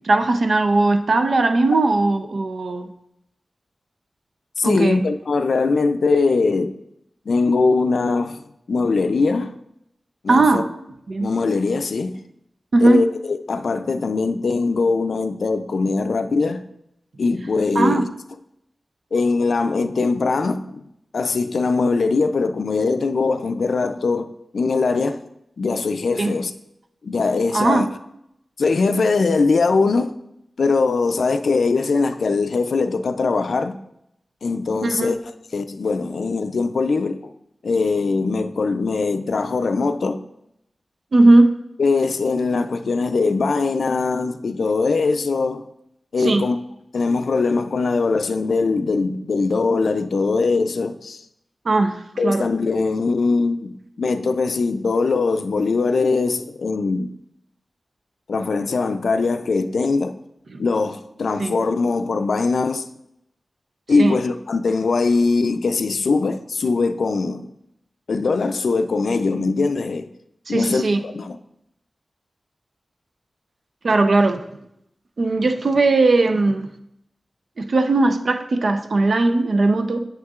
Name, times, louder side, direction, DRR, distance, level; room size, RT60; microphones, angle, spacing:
voice 1, 0.0-2.9 4.6-5.0 10.3-10.7 11.1-11.3 12.7-13.0 17.8-18.1 26.2-26.3 27.5-27.9 34.8-35.2 41.1-41.5 46.2-46.4 51.7-52.5 60.5-60.6 61.4-61.6 64.0-64.2 70.5-71.0 73.8-74.4 75.2-76.7 77.6-80.1, right 2 dB, 65° right, 0.5 m, -18 dB
voice 2, 4.6-6.7 7.3-8.4 8.7-9.6 10.2-10.6 11.2-12.2 12.8-16.6 17.2-18.1 19.1-20.8 21.1-25.2 25.6-26.5 27.0-27.9 28.6-30.1 30.6-33.8 34.4-35.2 35.5-37.3 37.6-40.2 41.8-45.7 46.1-46.6 46.9-51.2 52.2-57.1 58.3-60.2 60.6-62.9 63.9-67.5 68.1-70.1 70.5-71.4, left 4 dB, 80° left, 0.4 m, -21 dB
8.6 x 6.4 x 2.4 m
wide cardioid pair, 85°, 0 cm